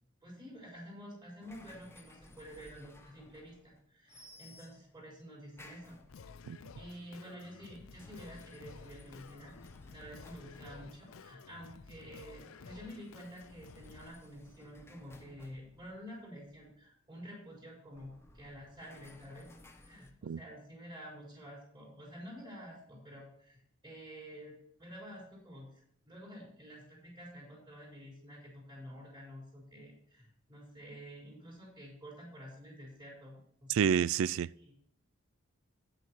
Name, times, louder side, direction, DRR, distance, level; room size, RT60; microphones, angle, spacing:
voice 1, 0.2-6.0 6.8-9.5 9.9-19.5 19.8-34.0 34.6-34.7, equal, 20° right, 4.4 m, -50 dB
sound 1, 1.4-3.8 4.1-5.0 5.5-6.5 7.7-11.4 12.8-16.8 17.9-20.1, left 1 dB, 10° left, 0.9 m, -58 dB
Singing, 6.1-14.1, left 5 dB, 75° left, 0.5 m, -53 dB
voice 2, 33.7-34.5, right 8 dB, 65° right, 0.3 m, -29 dB
9.2 x 7.7 x 4.4 m
head